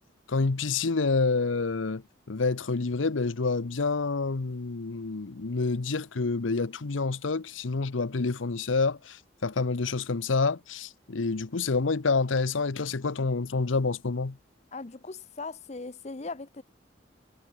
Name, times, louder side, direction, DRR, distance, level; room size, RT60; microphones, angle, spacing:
voice 1, 0.3-2.0 2.3-14.4, left 4 dB, 90° left, 0.8 m, -28 dB
voice 2, 14.7-16.6, left 3 dB, 35° left, 0.7 m, -39 dB
head